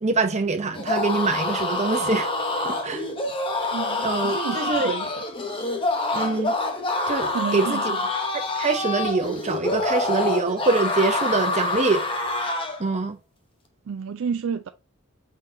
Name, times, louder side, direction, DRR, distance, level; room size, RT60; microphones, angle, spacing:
voice 1, 0.0-2.3 2.6-3.1 4.0-4.9 6.1-6.6 7.1-7.8 8.3-12.1 12.8-13.2, right 3 dB, 30° right, 0.7 m, -24 dB
sound 1, 0.7-12.8, left 2 dB, 25° left, 0.8 m, -26 dB
voice 2, 3.7-5.1 5.9-6.0 7.3-7.8 13.9-14.7, right 6 dB, 65° right, 0.4 m, -30 dB
5.1 x 4.0 x 2.6 m
head